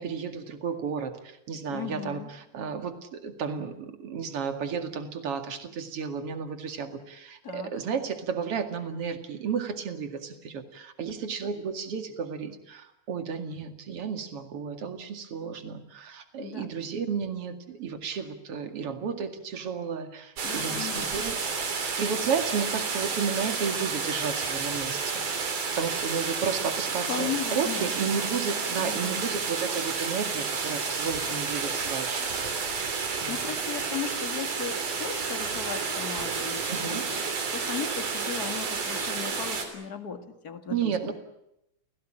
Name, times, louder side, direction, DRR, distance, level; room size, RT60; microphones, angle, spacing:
voice 1, 0.0-21.4 22.0-25.3 25.7-32.2 33.2-33.4 36.7-37.1 40.7-41.1, right 6 dB, 50° right, 7 dB, 2.9 m, -33 dB
voice 2, 1.7-2.3 7.4-7.7 16.4-16.7 20.4-21.2 27.1-28.2 28.7-29.3 33.3-41.1, left 7 dB, 35° left, 8 dB, 2.0 m, -37 dB
sound 1, 20.4-39.7, right 5 dB, 85° right, 5.0 m, -31 dB
29.5 x 17.5 x 8.9 m, 0.83 s
omnidirectional pair, 3.6 m